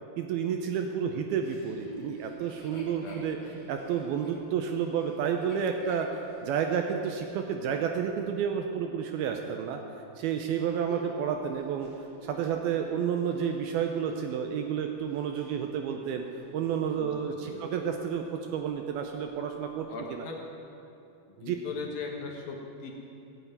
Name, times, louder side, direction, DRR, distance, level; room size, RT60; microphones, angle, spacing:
voice 1, 0.2-3.4 3.7-9.8 10.2-11.9 12.2-16.3 16.5-18.2 18.5-20.3 21.5-21.6, right 7 dB, 80° right, 4 dB, 2.3 m, -30 dB
Chuckle chortle, 1.4-7.0 7.6-7.7 10.4-14.3 14.9-16.4 16.7-17.0 17.4-18.2 18.5-18.6 18.9-19.4 20.1-20.2, left 1 dB, 20° left, 4.3 m, -47 dB
voice 2, 2.7-3.6 17.0-17.6 19.9-20.4 21.3-22.9, left 4 dB, 65° left, 0 dB, 2.7 m, -40 dB
16.0 x 8.2 x 9.2 m, 2.7 s
omnidirectional pair, 5.2 m